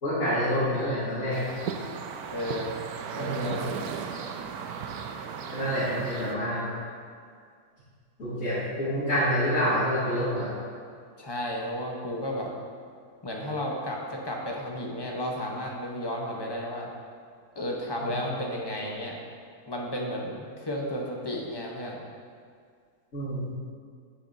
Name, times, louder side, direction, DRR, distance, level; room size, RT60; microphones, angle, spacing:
voice 1, 0.0-1.5 3.2-3.6 5.5-6.7 8.2-10.5 18.0-18.1 23.1-23.5, equal, 60° left, -13 dB, 2.4 m, -27 dB
sound 1, 1.3-6.4, right 6 dB, 80° right, 1.1 m, -36 dB
voice 2, 2.3-2.7 3.1-3.7 11.2-12.5 13.2-16.9 17.5-19.2 19.7-22.0, equal, 20° left, -2 dB, 0.7 m, -33 dB
9.3 x 7.2 x 2.7 m, 2.1 s
omnidirectional pair, 1.6 m